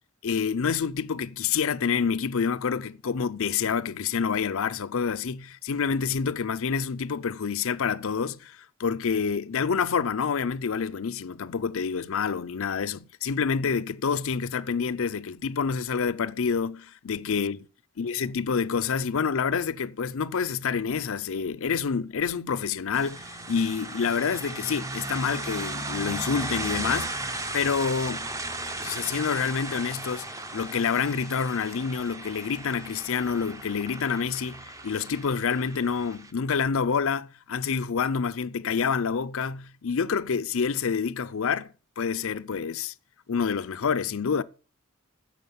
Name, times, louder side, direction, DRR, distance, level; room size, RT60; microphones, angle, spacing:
voice 1, 0.2-17.6 18.0-27.1 27.5-28.3 28.8-30.3 30.5-41.7 42.0-42.9 43.3-44.4, left 6 dB, 65° left, 0.5 m, -27 dB
sound 1, 22.9-36.3, right 2 dB, 15° right, 0.7 m, -36 dB
9.3 x 6.3 x 7.0 m
head